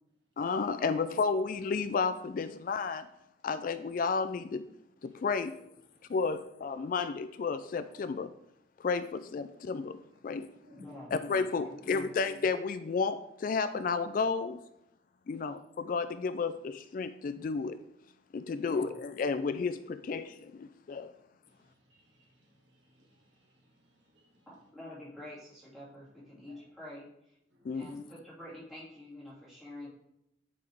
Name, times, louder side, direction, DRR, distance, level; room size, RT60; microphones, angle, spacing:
voice 1, 0.4-3.1 3.4-4.7 5.0-5.6 6.1-8.3 8.8-10.5 11.1-14.6 15.3-17.8 18.3-21.1 27.6-27.9, left 4 dB, 45° left, 0.3 m, -32 dB
voice 2, 5.0-6.2 10.6-10.9 15.3-15.6 18.4-18.5 21.1-24.5 26.5-26.7 27.5-27.9 29.8-29.9, left 1 dB, 75° right, 1.8 m, -66 dB
voice 3, 10.8-11.1 11.5-12.1 18.6-18.9 24.5-27.4 27.7-29.9, left 1 dB, ahead, 2.6 m, -47 dB
9.0 x 4.7 x 3.5 m
head